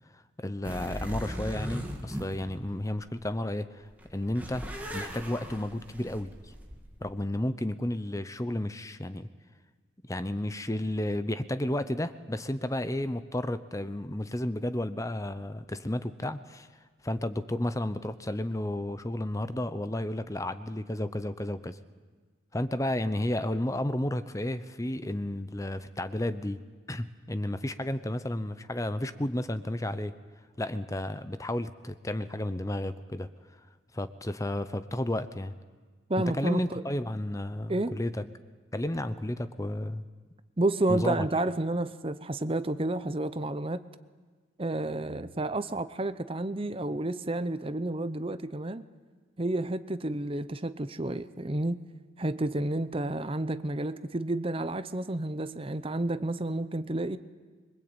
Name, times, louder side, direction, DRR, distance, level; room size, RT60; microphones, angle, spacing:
voice 1, 0.4-6.3 7.0-9.3 10.0-16.7 17.0-21.8 22.5-26.6 26.9-30.1 30.6-33.3 33.9-35.5 36.4-38.2 38.7-40.1 40.9-41.2, left 1 dB, 15° left, 0.8 m, -32 dB
sound 1, 0.6-3.4 3.8-7.2, equal, 10° right, 2.7 m, -39 dB
voice 2, 36.1-36.8 37.7-38.0 40.6-43.8 44.6-48.8 49.4-51.8 52.2-57.2, right 2 dB, 25° right, 0.8 m, -30 dB
25.0 x 23.0 x 9.0 m
head